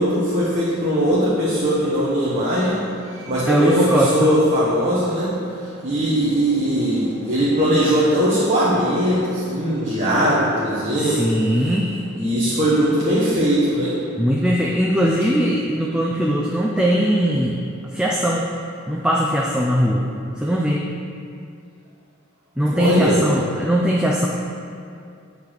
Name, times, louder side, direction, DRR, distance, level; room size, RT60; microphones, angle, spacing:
voice 1, 0.0-11.3 11.5-11.7 12.2-13.9 22.7-23.2, equal, 30° right, -9 dB, 1.2 m, -20 dB
voice 2, 3.5-4.3 11.0-11.9 14.2-17.6 17.9-18.4 18.9-20.1 20.4-20.8 22.6-24.3, equal, 5° right, -2 dB, 0.4 m, -20 dB
8.5 x 4.1 x 6.5 m, 2.4 s
head